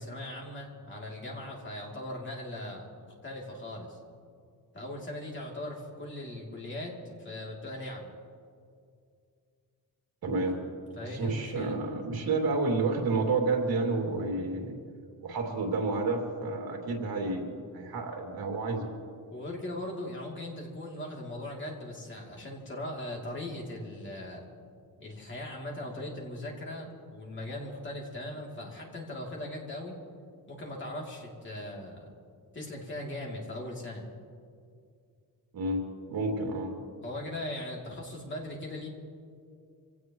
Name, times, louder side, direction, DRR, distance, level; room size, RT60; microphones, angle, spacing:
voice 1, 0.0-4.0 4.7-8.1 10.9-11.8 19.3-24.4 25.0-30.0 30.5-32.1 32.5-34.0 37.0-38.9, left 1 dB, 30° left, -2 dB, 3.1 m, -39 dB
voice 2, 10.2-10.6 11.0-14.8 15.2-18.9 35.5-36.7, right 3 dB, 75° right, 1 dB, 2.8 m, -30 dB
26.0 x 17.5 x 3.1 m, 2.3 s
wide cardioid pair, 170°, 36 cm